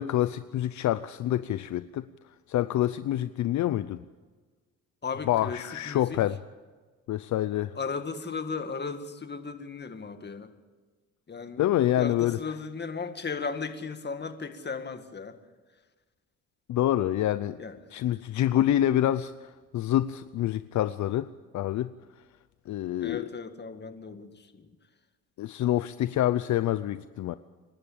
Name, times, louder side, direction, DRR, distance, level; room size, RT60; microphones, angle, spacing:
voice 1, 0.0-2.1 2.5-4.0 5.3-6.4 7.1-7.8 11.6-12.4 16.7-17.6 17.9-19.3 19.7-21.3 21.5-21.9 22.7-23.2 25.4-27.4, left 12 dB, 70° left, 13 dB, 0.7 m, -26 dB
voice 2, 5.0-6.2 7.8-10.5 11.3-11.7 12.0-15.4 17.6-17.8 23.0-24.7, left 5 dB, 35° left, 8 dB, 2.0 m, -36 dB
27.0 x 12.0 x 8.7 m, 1.3 s
cardioid pair, 90°, 30 cm